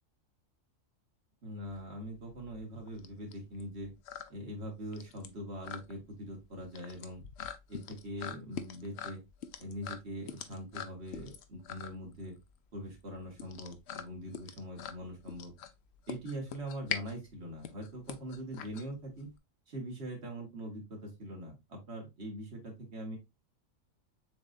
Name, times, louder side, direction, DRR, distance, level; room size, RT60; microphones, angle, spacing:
voice 1, 1.4-3.9 4.3-7.2 7.7-9.2 9.6-12.4 12.7-15.5 16.1-19.3 19.7-23.2, equal, 55° right, 0 dB, 1.8 m, -42 dB
sound 1, 1.6-19.4, left 8 dB, 65° left, 0.7 m, -44 dB
7.0 x 2.5 x 2.4 m, 0.22 s
omnidirectional pair, 1.4 m